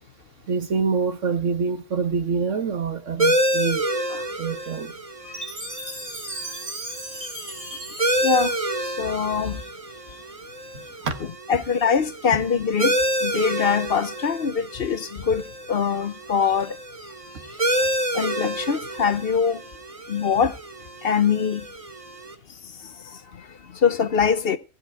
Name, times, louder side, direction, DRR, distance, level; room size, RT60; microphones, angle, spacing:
voice 1, 0.5-3.8 4.4-4.9 11.0-11.2, right 5 dB, 80° right, 1.9 m, -25 dB
sound 1, 3.2-22.3, right 1 dB, 30° right, 1.3 m, -29 dB
Chime, 5.3-9.6, right 1 dB, 45° right, 3.4 m, -37 dB
voice 2, 8.8-9.6 11.5-12.9 13.2-16.8 17.7-17.8 18.1-19.6 20.1-20.5 21.0-21.6 23.8-24.6, left 6 dB, 55° left, 1.0 m, -23 dB
15.5 x 5.6 x 9.4 m
omnidirectional pair, 1.3 m